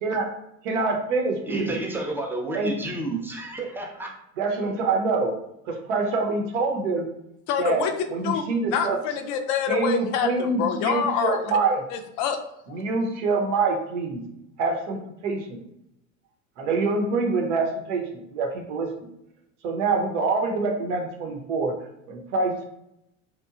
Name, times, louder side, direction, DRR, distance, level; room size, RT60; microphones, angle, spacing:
voice 1, 0.0-0.3 0.6-1.8 2.5-2.9 4.4-5.3 5.7-7.1 7.6-7.8 8.1-9.0 9.7-11.8 12.7-14.2 14.6-15.6 16.6-19.1 19.6-21.7 22.1-22.6, right 3 dB, 70° right, 2 dB, 0.8 m, -25 dB
voice 2, 1.5-4.1, right 2 dB, 5° right, 1 dB, 0.4 m, -31 dB
voice 3, 7.5-7.9 8.2-8.4 8.7-11.5 11.9-12.4 12.7-12.8, left 7 dB, 50° left, 6 dB, 0.5 m, -26 dB
2.9 x 2.2 x 2.3 m, 0.79 s
hypercardioid pair, 75°, 38 cm